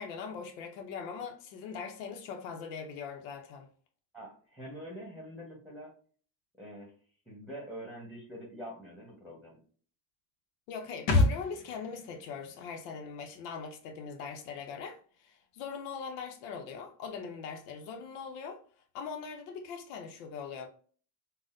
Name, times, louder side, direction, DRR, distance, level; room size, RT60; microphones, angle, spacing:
voice 1, 0.0-3.7 10.7-18.6 18.9-20.7, left 6 dB, 90° left, 0.7 m, -41 dB
voice 2, 4.1-5.9 6.6-6.9 7.3-9.6, equal, ahead, 1.2 m, -45 dB
sound 1, 11.1-14.6 14.8-14.9, left 2 dB, 65° left, 1.0 m, -32 dB
3.9 x 2.1 x 2.5 m
supercardioid pair, 95°, 49 cm